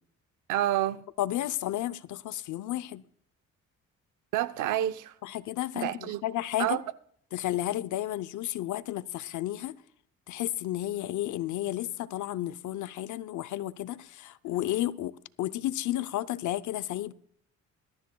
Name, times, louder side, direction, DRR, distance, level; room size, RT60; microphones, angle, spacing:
voice 1, 0.5-1.0 4.3-5.1 5.7-6.2 6.6-6.8, right 13 dB, 85° right, 0.8 m, -28 dB
voice 2, 1.2-3.0 5.2-6.8 7.3-9.7 10.3-17.1, left 14 dB, 75° left, 0.7 m, -32 dB
22.0 x 13.5 x 2.3 m
cardioid pair, 90°, 30 cm